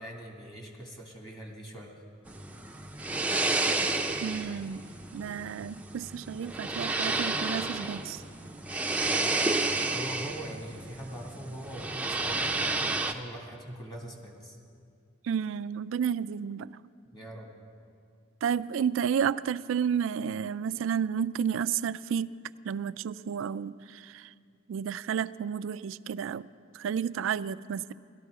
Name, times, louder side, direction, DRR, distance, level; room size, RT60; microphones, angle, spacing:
voice 1, 0.0-1.9 8.9-9.6 9.9-14.6 17.1-17.5, right 1 dB, 20° left, 0 dB, 2.1 m, -43 dB
sound 1, 2.3-13.1, right 3 dB, 10° right, 0.5 m, -31 dB
voice 2, 4.2-4.9 5.1-8.2 15.2-16.7 18.4-22.3 22.6-24.2 24.7-26.5 26.7-27.9, right 7 dB, 80° right, 17 dB, 0.3 m, -31 dB
17.5 x 13.0 x 4.7 m, 2.2 s
head